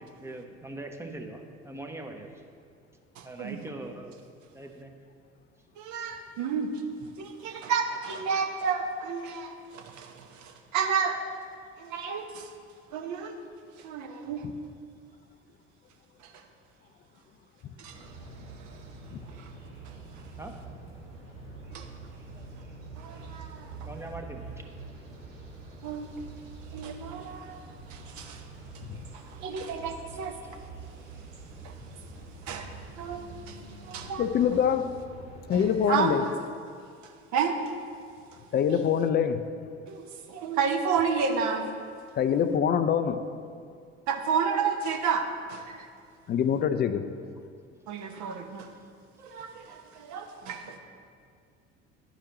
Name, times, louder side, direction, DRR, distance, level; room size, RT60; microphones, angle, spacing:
voice 1, 0.0-2.3 3.2-4.2 4.5-4.9 19.3-19.4 20.4-20.6 22.4-22.5 23.9-24.4, right 2 dB, 10° right, 3 dB, 0.7 m, -41 dB
voice 2, 3.2-3.6 5.8-6.7 7.2-11.2 11.8-12.5 12.9-13.4 13.8-14.5 16.2-16.4 17.8-18.2 18.6-18.8 19.4-19.5 19.8-19.9 21.7-21.9 23.0-23.9 25.8-26.1 26.7-27.5 28.2-28.4 29.1-30.4 31.6-31.7 32.4-34.3 35.5-36.2 37.0-37.6 38.7-38.8 39.9-41.6 44.1-45.9 47.9-48.7 49.2-50.8, right 6 dB, 55° right, 4 dB, 0.9 m, -31 dB
sound 1, 17.9-35.9, right 3 dB, 75° right, 1.5 m, -45 dB
voice 3, 34.2-35.0 35.5-36.2 38.5-39.5 42.1-43.2 46.3-47.0, left 8 dB, 30° left, 11 dB, 0.4 m, -25 dB
12.0 x 4.9 x 2.9 m, 2.2 s
figure-of-eight pair, 60°, 35 cm